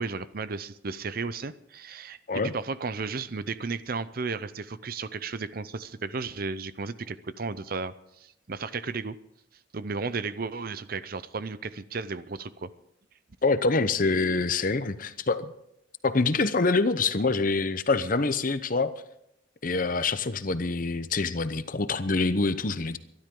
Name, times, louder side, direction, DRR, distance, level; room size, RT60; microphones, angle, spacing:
voice 1, 0.0-9.2 9.7-12.7, right 4 dB, 50° right, 15 dB, 0.6 m, -34 dB
voice 2, 13.4-15.5 16.0-18.9 19.6-23.0, left 3 dB, 45° left, 12 dB, 0.8 m, -25 dB
23.5 x 12.0 x 3.8 m, 0.77 s
head